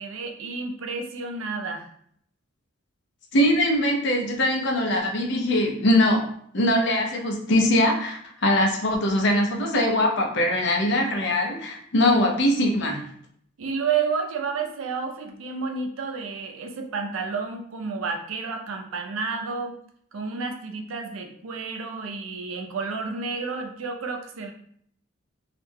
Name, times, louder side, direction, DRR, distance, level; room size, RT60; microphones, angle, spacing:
voice 1, 0.0-1.9 13.6-19.8 20.1-24.5, right 5 dB, 85° right, 4 dB, 0.5 m, -30 dB
voice 2, 3.3-6.2 6.5-13.0, left 1 dB, 60° left, 1 dB, 0.6 m, -22 dB
2.4 x 2.1 x 3.3 m, 0.66 s
head